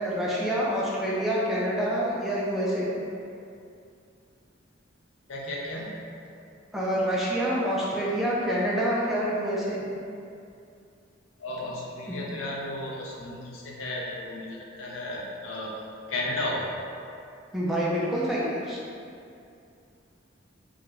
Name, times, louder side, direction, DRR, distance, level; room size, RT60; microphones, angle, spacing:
voice 1, 0.0-2.9 6.7-9.8 12.1-12.2 17.5-18.8, equal, ahead, -7 dB, 0.4 m, -27 dB
voice 2, 5.3-6.0 11.4-15.7 16.1-16.8, left 1 dB, 85° left, -3 dB, 0.5 m, -34 dB
2.4 x 2.1 x 3.1 m, 2.5 s
head